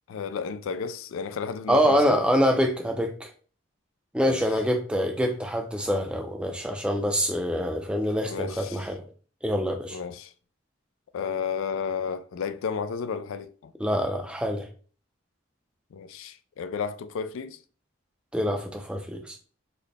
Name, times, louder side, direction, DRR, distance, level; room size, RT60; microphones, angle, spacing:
voice 1, 0.1-2.2 4.2-4.4 8.3-8.9 9.9-10.3 11.1-13.7 15.9-17.6, left 6 dB, 75° left, 0.3 m, -32 dB
voice 2, 1.7-3.3 4.1-9.0 9.4-10.0 13.8-14.7 18.3-19.4, equal, 5° right, 0.4 m, -25 dB
4.0 x 2.1 x 3.3 m
head